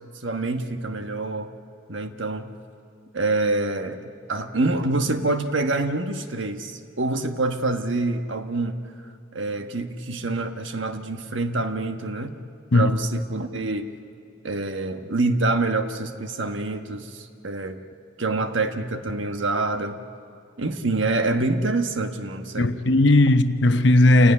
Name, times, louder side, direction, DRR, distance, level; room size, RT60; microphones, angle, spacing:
voice 1, 0.1-1.5 1.9-2.5 3.1-8.8 9.3-12.3 12.7-13.9 14.4-17.8 18.2-20.0 20.6-22.8, right 2 dB, 70° right, 1.3 m, -26 dB
voice 2, 22.6-24.3, left 2 dB, 60° left, 0.9 m, -17 dB
28.5 x 17.0 x 9.8 m
head